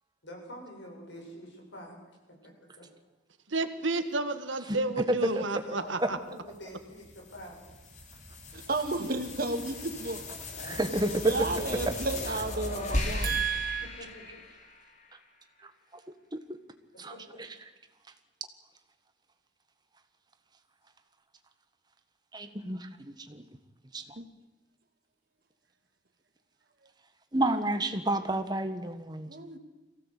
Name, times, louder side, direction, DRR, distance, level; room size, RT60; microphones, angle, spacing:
voice 1, 0.2-2.2 2.4-2.9 5.3-7.7 10.5-12.3 14.0-14.4 17.1-17.4 22.6-22.7, equal, 75° left, 7.6 m, -46 dB
voice 2, 3.5-6.2, right 2 dB, 85° right, 1.7 m, -31 dB
voice 3, 4.7-5.4 6.0-6.1 10.7-11.1 13.2-13.3 15.6-15.7 16.3-16.4 17.0-17.5 22.3-23.5 23.9-24.0 27.3-29.3, right 1 dB, 20° right, 1.5 m, -31 dB
sound 1, 6.5-15.1, left 2 dB, 40° left, 2.9 m, -37 dB
voice 4, 8.5-10.2 11.2-13.9 24.2-24.3 29.3-29.6, right 3 dB, 50° right, 2.1 m, -32 dB
23.0 x 16.5 x 8.4 m
head